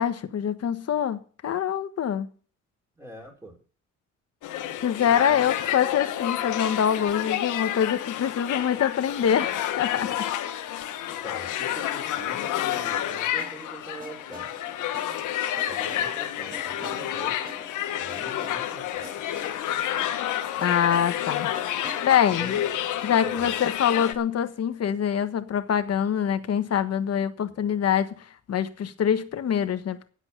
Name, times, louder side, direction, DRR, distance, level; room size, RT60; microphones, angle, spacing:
voice 1, 0.0-2.3 4.8-10.3 10.6-10.8 20.6-21.5 22.0-22.6 23.0-30.1, left 8 dB, 55° left, 1.3 m, -25 dB
voice 2, 3.0-3.6 5.1-5.5 11.1-14.5 15.6-17.4 18.0-19.1 22.3-22.7 23.2-23.5 27.5-27.8, right 1 dB, 10° right, 4.8 m, -43 dB
sound 1, 4.4-24.1, left 11 dB, 85° left, 1.3 m, -30 dB
sound 2, 12.4-24.3, left 1 dB, 30° right, 5.8 m, -47 dB
10.0 x 8.1 x 8.1 m
cardioid pair, 90°, 30 cm